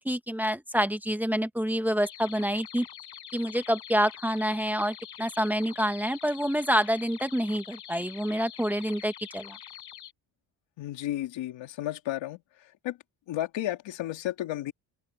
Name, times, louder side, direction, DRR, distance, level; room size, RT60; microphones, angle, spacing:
voice 1, 0.0-2.9 3.3-9.6, equal, 5° right, 1.8 m, -27 dB
sound 1, 2.0-10.1, left 10 dB, 60° left, 7.2 m, -45 dB
voice 2, 10.8-12.4 12.8-13.0 13.3-14.7, left 14 dB, 90° left, 2.4 m, -32 dB
open air
cardioid pair, 120°, 44 cm